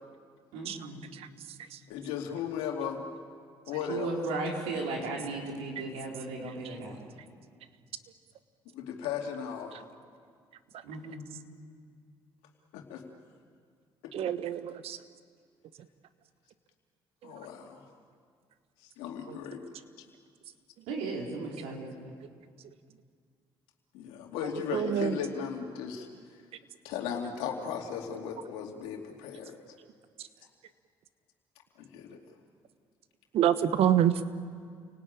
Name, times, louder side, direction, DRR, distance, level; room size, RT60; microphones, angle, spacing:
voice 1, 0.5-1.1 3.9-7.0 10.8-11.3 20.9-21.9, right 3 dB, 90° right, -1 dB, 4.5 m, -35 dB
voice 2, 1.9-3.1 3.7-4.1 8.7-9.9 12.7-13.0 14.0-14.4 17.2-17.9 18.8-19.6 20.0-20.1 23.9-26.1 26.8-29.6 31.8-32.2, left 7 dB, 85° left, 2 dB, 2.7 m, -36 dB
voice 3, 14.1-15.0 24.7-25.1 33.3-34.2, right 10 dB, 70° right, 12 dB, 1.2 m, -26 dB
29.0 x 18.5 x 8.9 m, 2.1 s
supercardioid pair, 60°, 10 cm